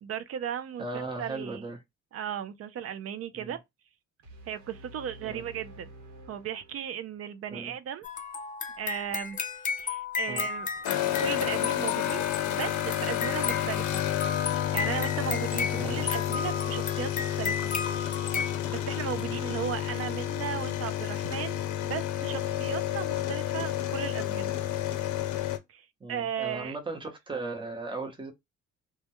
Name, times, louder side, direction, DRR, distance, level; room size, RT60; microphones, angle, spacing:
voice 1, 0.0-1.6 2.1-3.6 4.5-5.9 6.3-8.0 8.8-9.4 9.8-10.7 11.2-14.0 14.5-17.7 18.7-24.5 25.7-26.8, right 9 dB, 50° right, 0.4 m, -36 dB
voice 2, 0.8-1.8 3.3-3.6 5.2-5.4 7.5-7.7 10.3-10.5 12.4-12.6 15.8-16.1 19.1-19.4 26.0-28.3, right 3 dB, 15° right, 0.7 m, -37 dB
sound 1, 4.2-7.2, right 1 dB, 70° right, 1.0 m, -50 dB
sound 2, 8.0-18.6, left 6 dB, 30° left, 0.4 m, -34 dB
sound 3, 10.8-25.6, left 12 dB, 75° left, 0.5 m, -30 dB
2.2 x 2.1 x 2.9 m
cardioid pair, 90°, 30 cm